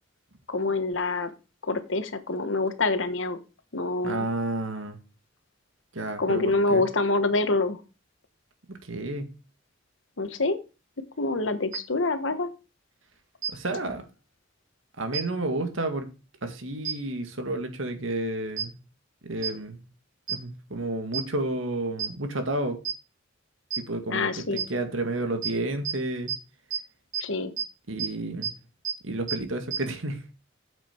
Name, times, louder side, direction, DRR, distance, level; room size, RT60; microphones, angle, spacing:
voice 1, 0.5-1.3 1.6-3.4 3.7-4.3 6.2-7.8 10.2-10.6 11.2-12.5 24.1-24.6 27.2-27.5, left 3 dB, 70° left, 1.2 m, -26 dB
voice 2, 4.0-5.0 5.9-6.8 8.7-9.3 13.5-14.0 15.0-16.1 16.4-18.7 19.2-19.8 20.3-22.8 23.7-26.3 27.9-28.5 29.0-30.2, right 2 dB, 85° right, 1.9 m, -31 dB
sound 1, 11.7-11.8 13.4-13.5 15.1-15.2 16.8-16.9 18.6-18.7 19.4-19.5 20.3-20.4 21.1-21.2 22.0-22.1 22.8-22.9 23.7-23.8 24.6-24.7 25.4-25.5 25.8-25.9 26.3-26.4 26.7-26.8 27.1-27.2 27.6-27.7 28.0-28.1 28.4-28.5 28.8-28.9 29.3-29.4 29.7-29.8, right 8 dB, 65° right, 4.6 m, -28 dB
8.7 x 7.4 x 4.4 m
head